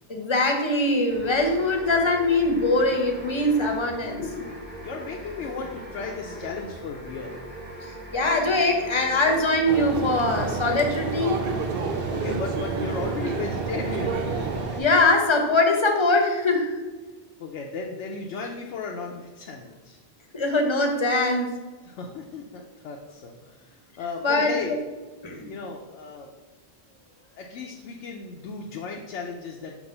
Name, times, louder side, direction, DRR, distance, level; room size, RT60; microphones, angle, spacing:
voice 1, 0.1-4.2 8.1-11.4 14.8-16.7 20.3-21.5 24.2-24.7 25.2-25.5, left 2 dB, 30° left, 3 dB, 0.7 m, -22 dB
sound 1, 1.1-15.0, equal, 10° right, 1.0 m, -41 dB
voice 2, 4.2-7.4 12.1-14.3 17.4-20.0 21.9-24.8 25.4-26.3 27.0-29.8, left 4 dB, 85° left, 0 dB, 1.0 m, -35 dB
sound 2, 9.7-14.8, right 4 dB, 60° right, 0.8 m, -29 dB
6.1 x 3.0 x 5.3 m, 1.3 s
omnidirectional pair, 1.2 m